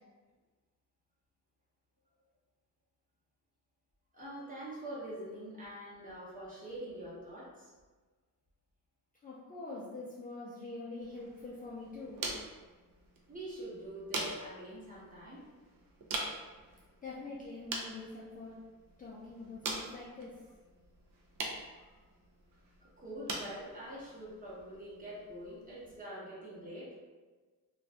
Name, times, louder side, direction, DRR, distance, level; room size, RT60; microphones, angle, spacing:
voice 1, 4.1-7.7 13.3-15.4 21.9-22.0 22.8-27.0, right 1 dB, 25° right, -7 dB, 0.9 m, -45 dB
voice 2, 9.2-12.3 17.0-18.6 19.0-20.3, left 3 dB, 25° left, -7 dB, 0.4 m, -44 dB
sound 1, 11.0-26.0, right 3 dB, 70° right, 0.6 m, -44 dB
2.6 x 2.3 x 3.3 m, 1.3 s
wide cardioid pair, 155°, 34 cm